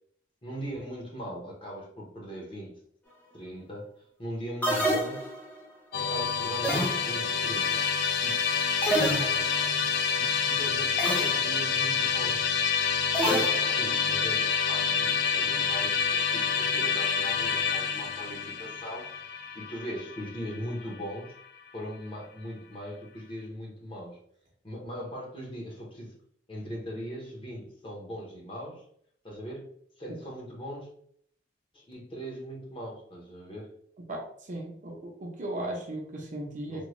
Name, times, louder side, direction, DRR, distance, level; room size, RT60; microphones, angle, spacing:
voice 1, 0.4-2.8 3.3-3.9 4.2-5.2 6.0-7.8 8.2-8.5 10.2-10.9 11.2-12.5 13.2-21.4 21.7-24.2 24.6-26.1 26.5-28.8 29.2-29.7 30.0-30.9 31.7-33.7 36.7-36.9, equal, 30° left, -2 dB, 0.9 m, -40 dB
sound 1, 4.6-5.6 6.6-7.4 8.8-9.7 11.0-11.5 13.1-14.0, right 1 dB, 10° left, 0.6 m, -28 dB
Musical instrument, 5.9-21.1, left 6 dB, 60° left, 0.4 m, -28 dB
voice 2, 34.1-36.9, right 1 dB, 45° right, 0 dB, 0.7 m, -36 dB
3.5 x 2.2 x 3.1 m, 0.63 s
head